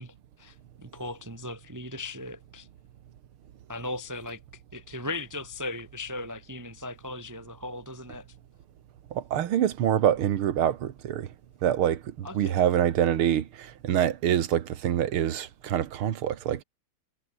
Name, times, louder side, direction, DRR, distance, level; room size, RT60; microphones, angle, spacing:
voice 1, 0.0-2.7 3.7-8.2 12.2-12.6, left 2 dB, 25° right, 0.4 m, -38 dB
voice 2, 9.1-11.3 11.6-16.6, right 10 dB, 85° right, 2.2 m, -25 dB
omnidirectional pair, 2.3 m